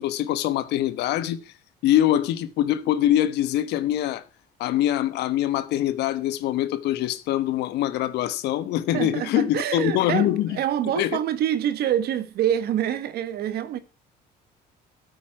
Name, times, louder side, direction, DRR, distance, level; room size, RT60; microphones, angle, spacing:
voice 1, 0.0-1.5 1.8-4.2 4.6-10.6 10.9-11.2, left 12 dB, 80° left, 1.3 m, -24 dB
voice 2, 8.9-13.8, right 10 dB, 70° right, 1.5 m, -26 dB
13.5 x 8.4 x 5.9 m
cardioid pair, 110°, 17 cm